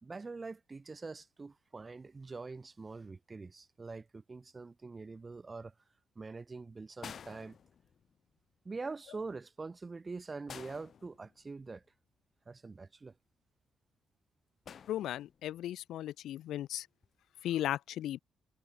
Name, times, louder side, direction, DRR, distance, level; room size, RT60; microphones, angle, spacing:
voice 1, 0.0-5.7 6.2-7.6 8.6-11.8 12.5-13.2, right 3 dB, 25° right, 3.6 m, -44 dB
sound 1, 7.0-8.2 10.5-11.7 14.6-15.6 16.8-17.1, left 7 dB, 55° left, 6.4 m, -51 dB
voice 2, 14.9-16.9 17.4-18.2, left 12 dB, 80° left, 1.8 m, -36 dB
cardioid pair, 90°, 0 cm